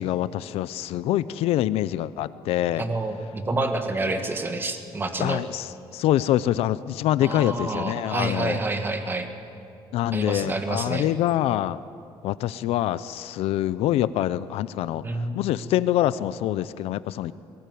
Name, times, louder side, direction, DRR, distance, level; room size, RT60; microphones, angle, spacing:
voice 1, 0.0-2.8 5.2-8.6 9.9-11.8 12.2-15.0 15.3-17.3, left 13 dB, 90° left, 16 dB, 0.6 m, -25 dB
voice 2, 2.8-5.4 7.2-9.3 10.1-11.1 15.0-15.4, right 2 dB, 20° right, 6 dB, 1.9 m, -28 dB
21.5 x 18.5 x 9.4 m, 2.6 s
cardioid pair, 145°, 10 cm